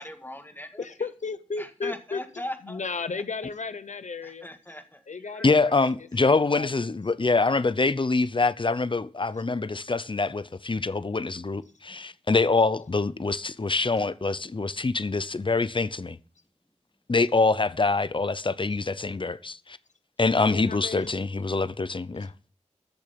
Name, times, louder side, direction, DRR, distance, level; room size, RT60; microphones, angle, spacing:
voice 1, 0.0-1.1 1.6-2.8 4.2-5.0 5.3-5.5, left 1 dB, 15° left, 1.9 m, -40 dB
voice 2, 0.8-2.2 2.6-4.5 5.1-5.9 6.2-6.7 20.5-21.1 22.2-22.3, left 4 dB, 80° left, 0.6 m, -34 dB
voice 3, 5.4-16.2 17.1-19.8 20.2-22.3, left 3 dB, 45° left, 0.6 m, -25 dB
14.0 x 6.9 x 5.2 m
wide cardioid pair, 55°, 12 cm